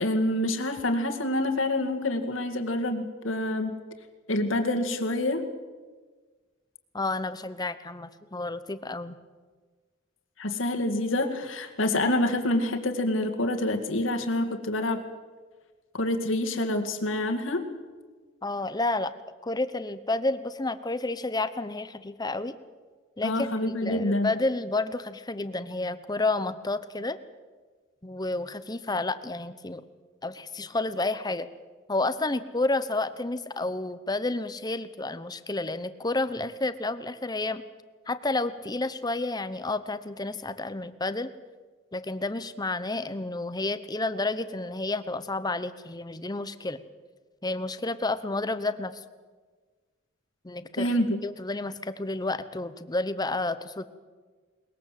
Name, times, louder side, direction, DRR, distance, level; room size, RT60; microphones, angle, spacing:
voice 1, 0.0-3.8 4.3-5.5 10.4-15.0 15.9-17.7 23.2-24.3 50.8-51.3, left 1 dB, 80° left, 5 dB, 2.2 m, -27 dB
voice 2, 6.9-9.1 18.4-19.1 19.4-22.6 23.2-23.5 23.8-27.2 28.0-29.8 30.2-31.5 31.9-37.6 38.1-41.3 41.9-46.8 47.4-49.0 50.4-50.9 51.2-53.8, left 2 dB, 20° left, 13 dB, 0.9 m, -30 dB
21.5 x 21.0 x 7.7 m, 1.4 s
head